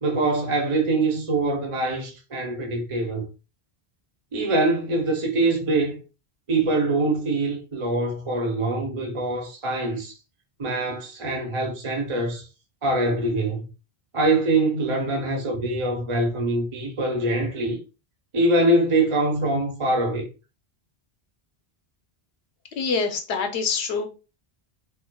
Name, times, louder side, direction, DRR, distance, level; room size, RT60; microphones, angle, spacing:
voice 1, 0.0-3.3 4.3-6.0 6.5-10.1 10.6-12.5 12.8-13.7 14.1-17.8 18.3-20.3, right 2 dB, 35° right, 0.7 m, -24 dB
voice 2, 22.8-24.1, left 5 dB, 85° left, 1.0 m, -25 dB
4.4 x 2.1 x 2.2 m
omnidirectional pair, 1.1 m